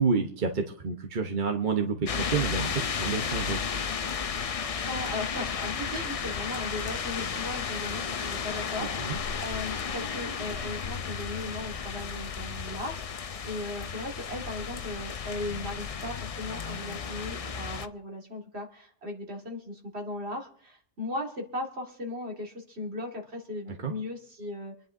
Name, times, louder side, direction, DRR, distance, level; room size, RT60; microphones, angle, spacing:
voice 1, 0.0-3.6 9.0-9.2 23.8-23.9, right 5 dB, 45° right, 3 dB, 1.1 m, -29 dB
sound 1, 2.1-17.9, left 6 dB, 45° left, 0.5 m, -33 dB
voice 2, 4.5-24.7, left 2 dB, 60° right, 1 dB, 2.3 m, -37 dB
26.0 x 10.5 x 2.7 m, 0.62 s
omnidirectional pair, 1.2 m